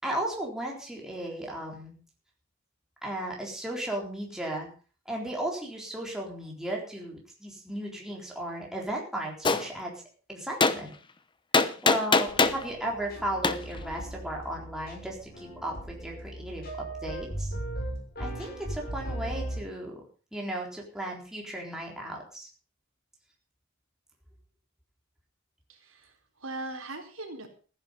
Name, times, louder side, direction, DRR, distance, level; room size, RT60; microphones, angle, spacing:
voice 1, 0.0-2.0 3.0-4.7 5.1-9.9 10.3-10.9 11.8-17.5 18.2-20.1 20.3-22.5, right 1 dB, 5° right, -2 dB, 3.9 m, -35 dB
Gunshot gunfire, 9.4-9.6 10.6-10.8 11.5-12.6 13.4-13.6, left 3 dB, 25° left, 0.9 m, -21 dB
sound 1, 12.3-19.6, right 1 dB, 50° left, 6.1 m, -38 dB
voice 2, 25.7-27.5, right 2 dB, 85° right, 2 dB, 4.2 m, -40 dB
15.0 x 10.5 x 5.5 m, 0.38 s
head